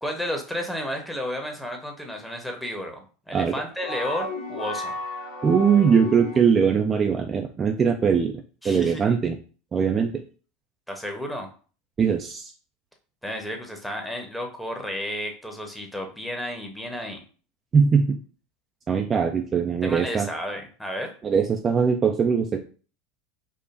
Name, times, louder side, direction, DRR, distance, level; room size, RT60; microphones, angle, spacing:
voice 1, 0.0-5.0 8.6-9.0 10.9-11.5 13.2-17.2 19.8-21.1, equal, 5° left, 2 dB, 0.9 m, -32 dB
sound 1, 3.8-6.7, left 2 dB, 60° left, 1.0 m, -33 dB
voice 2, 5.4-8.3 8.6-9.4 9.7-10.1 12.0-12.5 17.7-18.2 18.9-20.3 21.2-22.6, right 6 dB, 25° right, 4 dB, 0.4 m, -21 dB
5.0 x 2.2 x 2.5 m, 0.38 s
hypercardioid pair, 80°, 0 cm